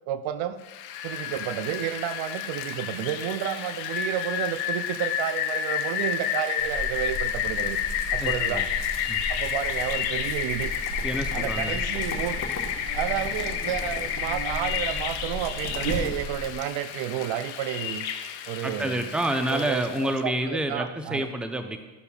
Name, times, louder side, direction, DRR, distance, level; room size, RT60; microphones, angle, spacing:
voice 1, 0.1-0.6 1.0-7.8 8.1-8.7 9.3-10.7 11.3-12.5 12.9-18.0 18.5-19.0 19.5-21.3, right 11 dB, 65° right, 12 dB, 0.7 m, -31 dB
Rain, 0.7-20.1, left 9 dB, 85° left, 0.8 m, -31 dB
Buzz, 6.6-16.5, right 1 dB, 85° right, 1.5 m, -36 dB
sound 1, 7.0-16.7, left 3 dB, 30° left, 1.4 m, -42 dB
voice 2, 8.2-8.7 9.1-9.2 11.0-11.8 18.6-21.8, right 1 dB, ahead, 7 dB, 0.7 m, -28 dB
12.5 x 6.6 x 2.4 m, 1.1 s
supercardioid pair, 70°, 50 cm